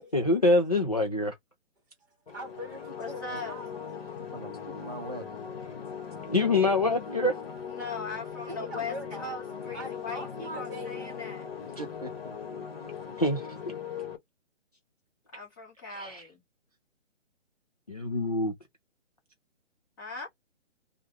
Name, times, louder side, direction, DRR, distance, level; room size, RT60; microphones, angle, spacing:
voice 1, 0.1-1.3 6.3-7.4 13.2-13.4 16.0-16.2 17.9-18.5, left 2 dB, 35° left, 0.4 m, -25 dB
sound 1, 2.3-14.2, left 7 dB, 50° left, 1.1 m, -39 dB
voice 2, 2.3-4.0 8.5-9.4 9.7-11.0, equal, 15° right, 1.3 m, -41 dB
voice 3, 3.0-3.6 7.7-10.3 10.5-11.5 15.3-16.4 20.0-20.3, left 3 dB, 15° left, 1.2 m, -39 dB
voice 4, 4.2-5.3 11.6-12.7, right 2 dB, 35° right, 0.5 m, -43 dB
3.2 x 2.3 x 2.7 m
hypercardioid pair, 170°, 37 cm